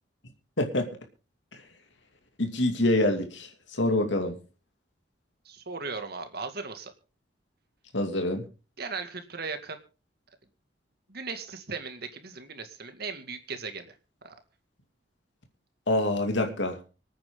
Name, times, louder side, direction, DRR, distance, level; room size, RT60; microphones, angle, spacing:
voice 1, 0.6-0.9 2.4-4.4 7.9-8.4 15.9-16.8, left 1 dB, 75° left, 4 dB, 2.6 m, -26 dB
voice 2, 5.5-6.9 8.8-9.8 11.1-14.0 14.2-14.3, right 4 dB, 55° right, 7 dB, 2.2 m, -37 dB
25.0 x 9.2 x 3.8 m, 0.35 s
head